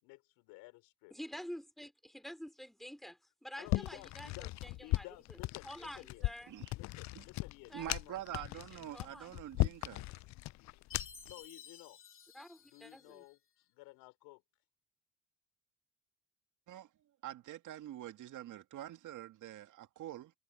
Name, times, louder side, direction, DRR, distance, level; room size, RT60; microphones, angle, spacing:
voice 1, 0.0-1.1 3.6-6.3 6.7-8.2 11.2-12.0 12.7-14.4, left 23 dB, 80° left, 5.1 m, -54 dB
voice 2, 1.1-5.4 5.6-6.5 7.7-8.0 8.4-9.3 12.3-13.2, equal, ahead, 3.8 m, -49 dB
sound 1, 3.7-11.3, left 19 dB, 55° left, 0.4 m, -37 dB
voice 3, 7.7-10.1 16.7-16.9 17.2-20.3, right 12 dB, 65° right, 2.4 m, -45 dB
Chime, 10.9-13.3, left 6 dB, 40° left, 3.3 m, -54 dB
hypercardioid pair, 60°, 33 cm